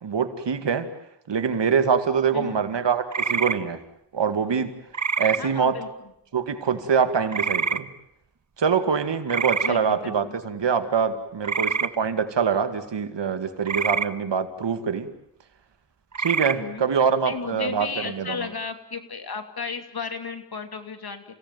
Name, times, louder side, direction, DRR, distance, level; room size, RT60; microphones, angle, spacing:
voice 1, 0.0-0.9 1.3-3.8 4.1-4.7 5.2-5.8 6.3-7.9 8.6-15.1 16.2-18.4, right 6 dB, 80° right, 2.2 m, -24 dB
sound 1, 3.1-3.6 4.9-5.4 7.3-7.8 9.3-9.7 11.4-11.9 13.7-14.1 16.1-16.6, right 5 dB, 45° right, 1.3 m, -25 dB
voice 2, 5.4-5.9 9.6-10.4 16.5-16.8 17.2-21.2, left 5 dB, 60° left, 3.0 m, -34 dB
29.5 x 17.5 x 9.4 m
cardioid pair, 55°, 42 cm